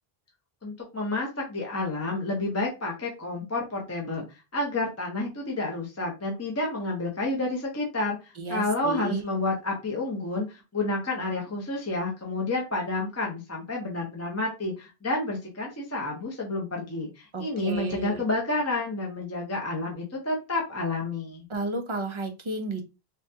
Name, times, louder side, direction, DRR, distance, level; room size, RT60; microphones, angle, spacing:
voice 1, 0.6-4.2 4.5-8.2 8.5-21.5, left 2 dB, 20° left, -1 dB, 0.6 m, -30 dB
voice 2, 8.4-9.2 17.3-18.2 21.5-22.8, right 2 dB, 40° right, 5 dB, 0.5 m, -32 dB
3.4 x 2.2 x 2.7 m, 0.27 s
omnidirectional pair, 1.0 m